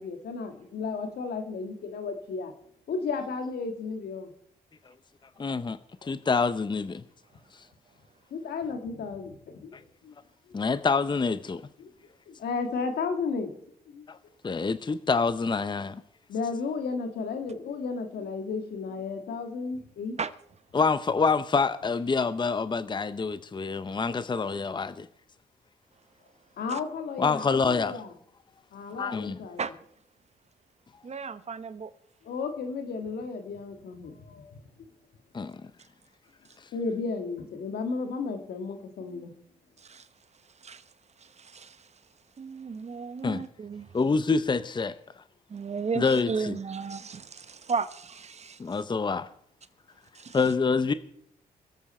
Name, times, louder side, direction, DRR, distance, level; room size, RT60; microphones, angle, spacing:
voice 1, 0.0-2.5 2.9-4.3 6.0-6.1 8.3-10.1 10.5-10.6 11.8-11.9 12.3-13.5 13.9-14.1 16.3-20.2 26.6-28.1 28.7-29.6 32.2-34.5 36.7-39.3, left 4 dB, 75° left, 1.9 m, -33 dB
voice 2, 5.4-7.0 10.5-11.6 14.1-14.2 14.4-16.0 20.7-25.1 27.2-27.9 29.0-29.4 35.3-35.6 43.2-43.4 43.9-44.9 45.9-46.6 48.6-49.3 50.3-50.9, left 4 dB, 30° left, 0.7 m, -26 dB
voice 3, 31.0-31.9 39.8-40.1 40.6-40.8 41.2-41.9 42.4-43.9 45.5-48.6 50.1-50.4, right 5 dB, 40° right, 0.9 m, -34 dB
23.5 x 8.2 x 4.4 m
cardioid pair, 65°, 17 cm